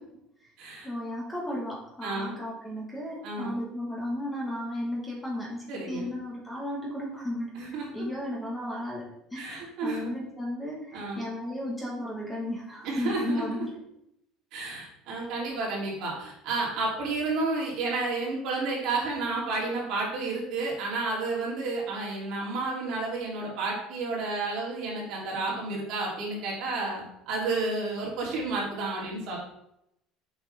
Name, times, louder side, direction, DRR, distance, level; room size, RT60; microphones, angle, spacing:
voice 1, 0.8-7.5 7.9-13.7, left 1 dB, 10° left, -3 dB, 1.2 m, -34 dB
voice 2, 2.0-2.3 3.2-3.6 5.7-6.1 7.5-7.9 9.3-10.1 10.9-11.3 12.8-13.7 14.5-29.4, right 3 dB, 55° right, -4 dB, 2.7 m, -31 dB
6.8 x 5.7 x 3.3 m, 0.79 s
cardioid pair, 165°, 0 cm